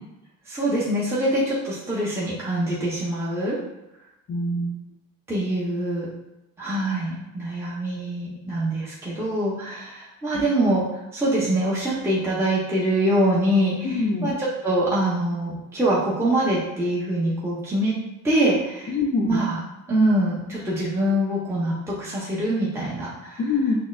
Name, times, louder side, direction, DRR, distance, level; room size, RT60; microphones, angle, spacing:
voice 1, 0.5-3.6 5.3-6.1 6.6-10.9 11.1-17.9 18.2-18.9 19.2-19.6 19.9-23.4, right 1 dB, 5° right, -7 dB, 0.8 m, -24 dB
voice 2, 4.3-4.8 13.8-14.3 18.9-19.4 23.4-23.7, left 3 dB, 35° left, 3 dB, 0.5 m, -24 dB
6.0 x 2.1 x 2.4 m, 0.95 s
cardioid pair, 125°, 36 cm